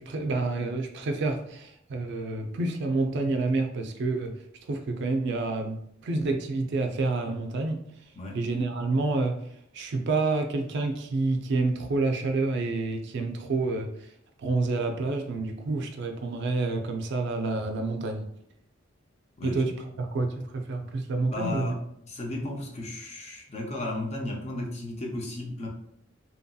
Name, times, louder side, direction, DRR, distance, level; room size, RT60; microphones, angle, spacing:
voice 1, 0.0-4.4 4.7-7.8 8.3-9.5 9.7-14.1 14.4-18.3 19.4-21.7, right 3 dB, 60° right, 5 dB, 0.4 m, -28 dB
voice 2, 21.3-21.8 22.0-25.7, left 1 dB, 35° left, 0 dB, 0.5 m, -34 dB
2.8 x 2.6 x 2.3 m, 0.73 s
head